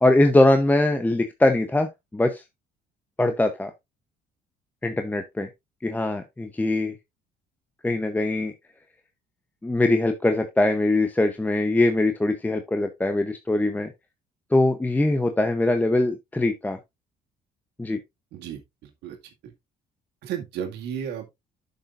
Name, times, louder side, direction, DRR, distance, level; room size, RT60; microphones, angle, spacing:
voice 1, 0.0-2.4 3.2-3.7 4.8-5.5 5.8-7.0 7.8-8.5 9.6-13.9 14.5-16.8 17.8-18.0, left 2 dB, 10° left, 0.8 m, -22 dB
voice 2, 18.3-19.2 19.4-19.5 20.2-21.3, right 9 dB, 85° right, 2.0 m, -34 dB
9.8 x 6.7 x 2.5 m
cardioid pair, 110°, 17 cm